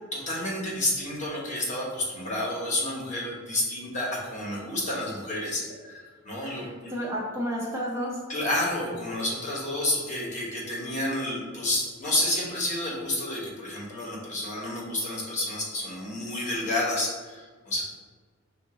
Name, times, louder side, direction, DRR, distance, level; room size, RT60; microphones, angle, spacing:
voice 1, 0.1-6.9 8.3-17.8, left 1 dB, 35° left, -4 dB, 1.2 m, -30 dB
voice 2, 6.5-8.2, equal, 15° right, -4 dB, 0.5 m, -31 dB
5.5 x 2.6 x 3.7 m, 1.4 s
head